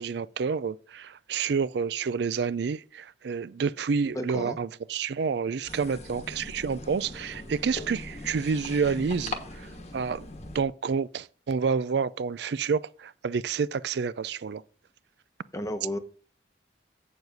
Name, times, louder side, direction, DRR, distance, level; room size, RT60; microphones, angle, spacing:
voice 1, 0.0-10.3 10.5-14.6, right 5 dB, 65° right, 0.4 m, -29 dB
voice 2, 4.1-4.6 15.5-16.0, left 1 dB, 15° left, 0.8 m, -32 dB
sound 1, 5.7-10.6, left 2 dB, 35° left, 1.2 m, -40 dB
8.0 x 6.9 x 4.1 m
head